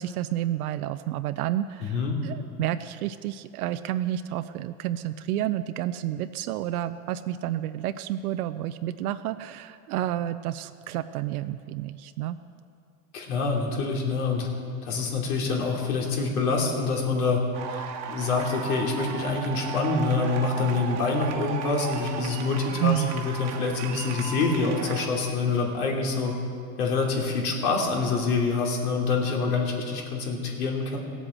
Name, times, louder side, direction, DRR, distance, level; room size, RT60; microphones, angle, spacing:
voice 1, 0.0-12.4 22.7-23.2, right 12 dB, 75° right, 11 dB, 0.6 m, -30 dB
voice 2, 1.8-2.2 13.1-14.5 14.8-17.4 17.7-26.4 26.8-31.0, left 4 dB, 75° left, 0 dB, 3.1 m, -26 dB
sound 1, 17.5-25.1, right 7 dB, 40° right, 1.2 m, -36 dB
16.5 x 8.3 x 7.3 m, 2.4 s
supercardioid pair, 135°, 44 cm